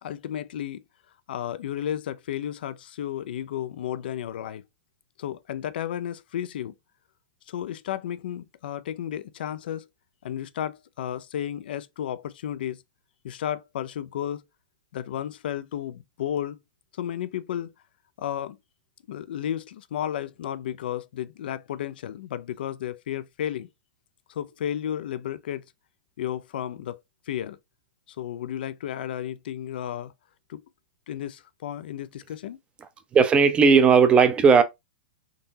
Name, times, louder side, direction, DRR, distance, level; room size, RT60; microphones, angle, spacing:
voice 1, 0.0-0.8 1.3-4.7 5.2-6.7 7.5-9.9 10.2-12.8 13.2-14.4 14.9-16.6 17.0-17.7 18.2-18.6 19.1-23.7 24.3-25.7 26.2-27.0 27.3-27.6 28.2-30.1 30.5-30.6 31.1-32.6, left 10 dB, 70° left, 0.4 m, -33 dB
voice 2, 33.1-34.6, right 5 dB, 20° right, 0.6 m, -16 dB
3.7 x 2.8 x 2.7 m
hypercardioid pair, 120°, 5 cm